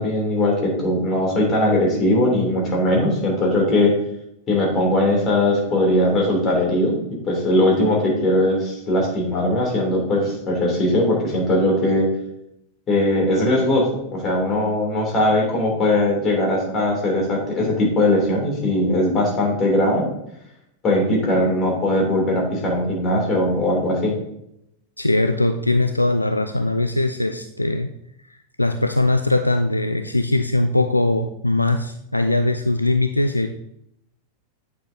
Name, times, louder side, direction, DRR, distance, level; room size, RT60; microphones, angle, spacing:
voice 1, 0.0-3.9 4.5-12.1 12.9-20.1 20.8-24.1, left 1 dB, 25° left, -1 dB, 2.9 m, -20 dB
voice 2, 25.0-27.9 28.3-33.5, left 2 dB, 85° left, 8 dB, 0.3 m, -21 dB
9.1 x 6.2 x 2.7 m, 0.79 s
figure-of-eight pair, 90°, 0 cm